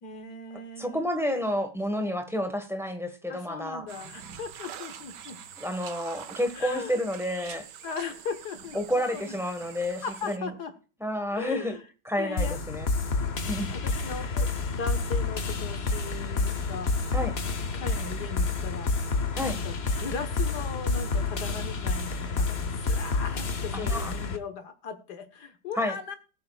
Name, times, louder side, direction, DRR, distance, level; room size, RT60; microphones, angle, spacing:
voice 1, 0.0-1.0 3.3-5.4 6.5-7.0 7.8-9.3 10.0-10.7 11.3-11.8 12.2-12.6 13.7-16.9 17.7-26.1, left 5 dB, 65° left, 9 dB, 1.8 m, -38 dB
voice 2, 0.8-3.9 5.6-7.7 8.7-10.5 11.0-11.8 12.0-12.9 13.5-13.8 17.1-17.3 19.3-19.6 23.7-24.1 25.8-25.9, left 1 dB, ahead, 6 dB, 1.3 m, -30 dB
sound 1, 3.9-10.4, right 8 dB, 70° right, 1.5 m, -45 dB
sound 2, 12.4-24.4, left 3 dB, 40° left, 1.0 m, -29 dB
20.0 x 7.7 x 2.4 m, 0.36 s
omnidirectional pair, 2.0 m